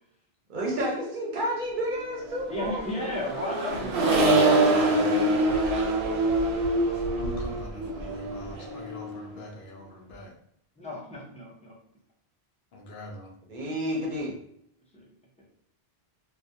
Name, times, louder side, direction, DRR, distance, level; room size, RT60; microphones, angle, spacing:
voice 1, 0.5-2.8 13.5-14.4, equal, 55° right, -3 dB, 0.7 m, -30 dB
voice 2, 2.5-3.9 4.5-5.4 10.8-11.7 14.9-15.1, left 1 dB, 10° left, -6 dB, 0.4 m, -35 dB
Accelerating revving vroom, 2.5-9.2, right 2 dB, 90° right, 0.8 m, -25 dB
voice 3, 7.2-10.3 12.7-13.3, left 1 dB, 65° left, 1 dB, 0.7 m, -43 dB
2.2 x 2.0 x 2.7 m, 0.69 s
omnidirectional pair, 1.1 m